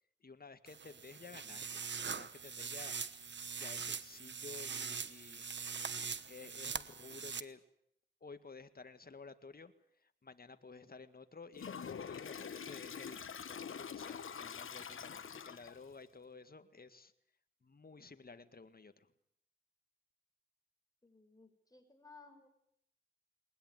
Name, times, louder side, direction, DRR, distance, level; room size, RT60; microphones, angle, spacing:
voice 1, 0.2-1.8 2.1-3.0 3.6-5.5 6.3-7.6 8.2-9.7 10.0-17.1 17.6-19.1, left 4 dB, 45° left, 10 dB, 1.8 m, -53 dB
sound 1, 0.7-7.4, right 6 dB, 60° right, 1.1 m, -42 dB
Toilet flush, 11.5-15.9, left 7 dB, 75° left, 1.2 m, -45 dB
voice 2, 21.0-22.5, left 4 dB, 15° left, 5 dB, 5.8 m, -59 dB
20.5 x 20.0 x 9.5 m, 0.74 s
cardioid pair, 50°, 21 cm